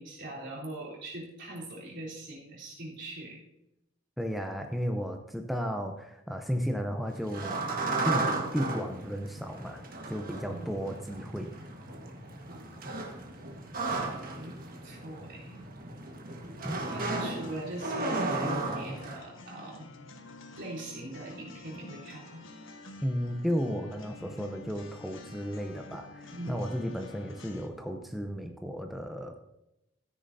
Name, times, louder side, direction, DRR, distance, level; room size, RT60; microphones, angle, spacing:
voice 1, 0.0-3.4 10.5-10.7 12.4-12.9 14.3-14.6 14.8-15.7 16.9-19.9 20.6-22.4 26.3-26.6, right 1 dB, 60° right, -4 dB, 3.7 m, -41 dB
voice 2, 4.2-7.6 8.0-11.5 16.6-16.8 23.0-29.4, equal, ahead, 3 dB, 0.7 m, -34 dB
sound 1, 7.1-19.2, right 2 dB, 45° right, 1.5 m, -35 dB
sound 2, 16.7-27.7, left 2 dB, 70° left, 1.2 m, -49 dB
14.0 x 10.0 x 2.7 m, 0.87 s
head